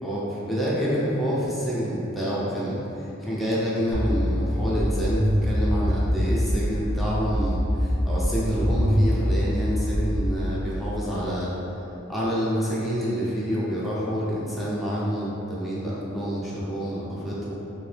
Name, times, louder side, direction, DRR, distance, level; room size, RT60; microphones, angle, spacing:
voice 1, 0.0-2.8 3.2-11.5 12.1-17.5, equal, ahead, -9 dB, 0.6 m, -27 dB
sound 1, 3.9-6.9 7.3-10.3, equal, 80° right, 0.8 m, -24 dB
3.2 x 3.0 x 3.2 m, 3.0 s
head